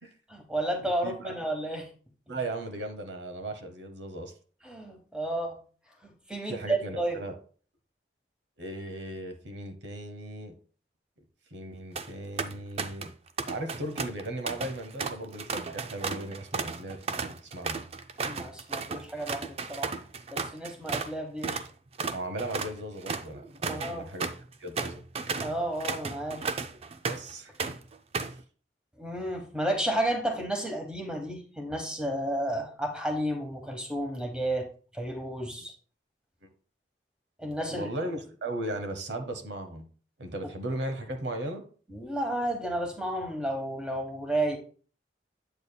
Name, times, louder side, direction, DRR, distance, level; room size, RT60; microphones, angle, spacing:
voice 1, 0.3-1.9 4.6-5.6 6.0-7.2 18.2-20.0 20.3-21.6 23.7-24.0 25.4-26.4 29.0-34.7 34.9-35.7 37.4-37.9 41.9-44.6, right 1 dB, 5° right, 3 dB, 1.2 m, -32 dB
voice 2, 0.8-1.3 2.3-4.3 6.5-7.3 8.6-10.6 11.5-13.1 13.5-17.8 22.1-24.3 24.6-25.0 27.0-27.5 37.7-39.9 40.2-41.6, right 1 dB, 75° right, 6 dB, 1.0 m, -37 dB
sound 1, 11.7-12.1 12.4-13.1 13.4-21.1 21.4-21.7 22.0-27.3 27.6-28.4, right 4 dB, 35° right, 0.4 m, -34 dB
8.4 x 7.1 x 2.2 m, 0.41 s
head